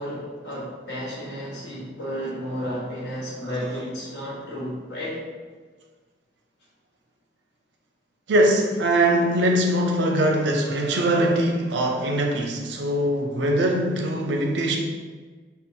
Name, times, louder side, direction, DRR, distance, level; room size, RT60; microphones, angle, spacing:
voice 1, 0.0-5.2, equal, 85° left, -6 dB, 1.3 m, -32 dB
voice 2, 8.3-14.8, right 1 dB, 90° right, 2 dB, 0.6 m, -22 dB
3.8 x 2.1 x 3.9 m, 1.4 s
head